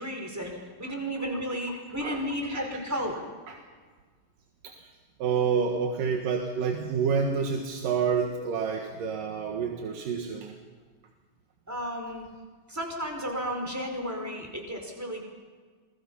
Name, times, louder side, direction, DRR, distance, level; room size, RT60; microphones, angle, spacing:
voice 1, 0.0-3.1 11.7-12.2 12.7-15.2, equal, 5° right, 2 dB, 4.6 m, -33 dB
voice 2, 5.2-10.5, right 6 dB, 80° right, 3 dB, 3.3 m, -28 dB
27.5 x 22.5 x 5.6 m, 1.5 s
omnidirectional pair, 3.9 m